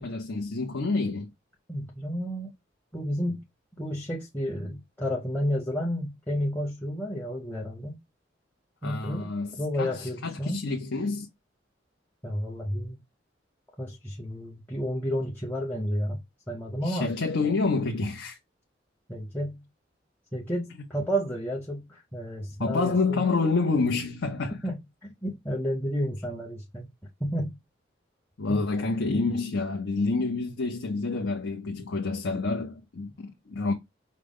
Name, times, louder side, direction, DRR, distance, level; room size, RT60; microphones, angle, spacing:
voice 1, 0.0-1.3 8.8-11.3 16.8-18.4 22.6-24.6 28.4-33.7, left 3 dB, 90° left, 0.7 m, -28 dB
voice 2, 1.7-2.5 2.9-3.4 3.8-8.0 8.8-9.3 9.6-10.6 12.2-13.0 13.8-17.1 19.1-19.6 20.3-23.3 24.6-24.8 25.0-26.9 27.2-27.6 28.5-28.6 29.1-29.2, equal, 10° left, 0.7 m, -31 dB
4.9 x 2.2 x 3.5 m
head